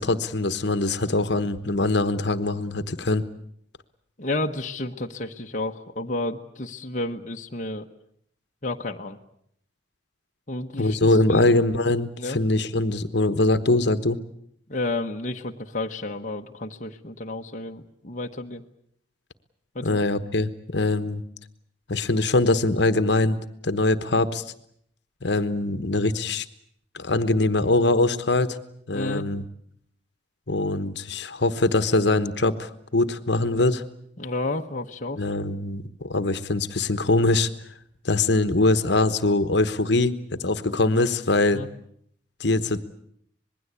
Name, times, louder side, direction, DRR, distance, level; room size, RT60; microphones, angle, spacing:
voice 1, 0.0-3.2 10.8-14.2 19.8-21.2 21.9-24.4 25.2-26.4 26.9-28.6 28.9-29.4 30.5-33.8 35.2-37.5 38.0-41.6 42.4-42.8, left 2 dB, 65° left, 12 dB, 1.2 m, -23 dB
voice 2, 4.2-7.9 8.6-9.2 10.5-11.5 12.2-12.4 14.7-18.6 19.7-20.0 28.9-29.3 34.2-35.2 41.5-41.7, left 2 dB, 40° left, 2 dB, 1.1 m, -31 dB
26.0 x 20.5 x 8.3 m, 0.69 s
head